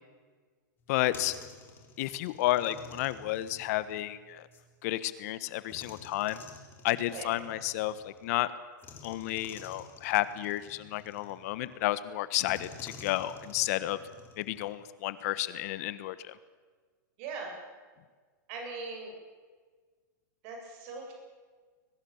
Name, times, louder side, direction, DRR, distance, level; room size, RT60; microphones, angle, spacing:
sound 1, 0.8-4.7 5.7-8.3 8.8-11.7 12.4-14.8, left 4 dB, 20° left, 3.6 m, -51 dB
voice 1, 0.9-1.3 2.0-4.5 4.8-6.4 6.8-8.5 9.0-14.0 14.4-16.3, left 15 dB, 50° left, 15 dB, 1.3 m, -31 dB
voice 2, 17.2-17.5 18.5-19.1 20.4-21.1, right 4 dB, 45° right, 1 dB, 8.0 m, -40 dB
22.5 x 21.0 x 7.2 m, 1.5 s
hypercardioid pair, 145°, 11 cm